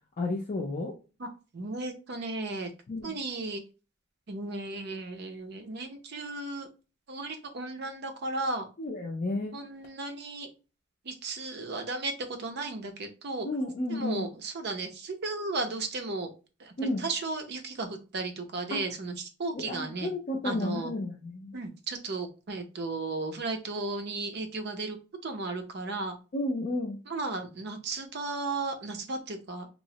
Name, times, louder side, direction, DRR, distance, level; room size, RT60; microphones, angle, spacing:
voice 1, 0.2-0.9 2.9-3.1 8.8-9.6 13.4-14.3 16.8-17.1 18.7-18.8 19.5-21.6 26.3-27.0, left 2 dB, 40° left, -1 dB, 0.4 m, -32 dB
voice 2, 1.5-2.7 3.0-3.6 4.3-6.7 7.1-8.7 9.5-10.5 11.0-13.5 13.9-16.3 16.6-20.1 20.4-20.9 21.5-25.0 25.2-26.1 27.1-29.7, right 3 dB, 55° right, 6 dB, 0.6 m, -35 dB
3.0 x 2.0 x 2.7 m, 0.32 s
head